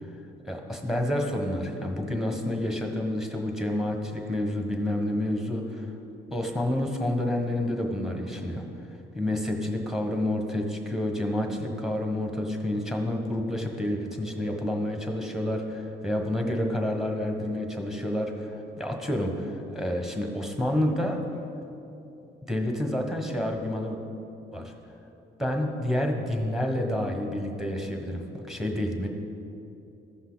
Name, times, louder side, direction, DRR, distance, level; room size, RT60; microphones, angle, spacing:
voice 1, 0.4-5.9 6.3-8.6 9.1-21.2 22.5-24.0 24.5-24.7 25.4-29.1, left 1 dB, ahead, 2 dB, 1.3 m, -29 dB
14.5 x 5.5 x 4.0 m, 2.8 s
cardioid pair, 90°, 20 cm